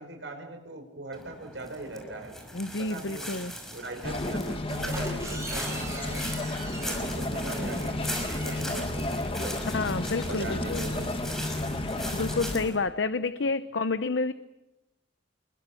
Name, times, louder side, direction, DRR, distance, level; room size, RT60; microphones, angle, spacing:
voice 1, 0.0-2.4 2.8-3.4 3.7-6.3 6.8-9.5 10.2-11.3, right 2 dB, 80° right, 3 dB, 5.0 m, -40 dB
sound 1, 1.1-12.8, equal, ahead, 5.6 m, -39 dB
voice 2, 2.5-3.5 9.7-10.8 12.1-14.3, left 3 dB, 85° left, 11 dB, 0.8 m, -29 dB
sound 2, 4.0-12.7, left 2 dB, 30° left, 1.5 m, -32 dB
sound 3, 4.8-8.6, right 2 dB, 15° right, 7.6 m, -41 dB
30.0 x 22.5 x 7.1 m, 0.98 s
head